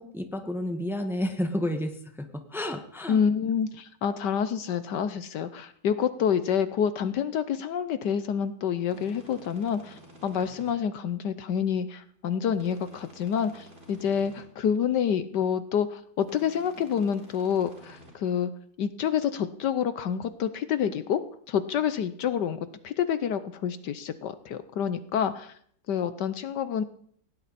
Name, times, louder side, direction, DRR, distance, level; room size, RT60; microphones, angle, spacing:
voice 1, 0.0-3.2, left 1 dB, ahead, 6 dB, 1.2 m, -31 dB
voice 2, 3.1-18.5 18.8-21.2 21.5-25.5 25.9-26.8, left 8 dB, 70° left, 12 dB, 1.3 m, -28 dB
sound 1, 8.9-10.7 12.5-14.4 16.2-18.1, right 1 dB, 30° right, 4.1 m, -51 dB
19.0 x 17.5 x 4.2 m, 0.62 s
omnidirectional pair, 2.0 m